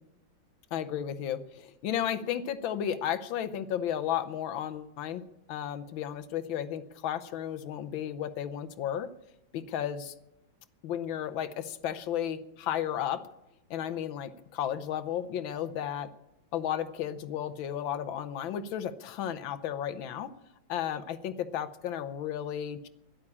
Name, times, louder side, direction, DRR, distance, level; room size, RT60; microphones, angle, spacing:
voice 1, 0.7-5.2 5.5-9.1 9.5-10.1 10.8-13.2 13.7-16.1 16.5-20.3 20.7-22.9, left 10 dB, 75° left, 12 dB, 1.5 m, -33 dB
12.5 x 11.0 x 8.5 m, 0.91 s
omnidirectional pair, 2.2 m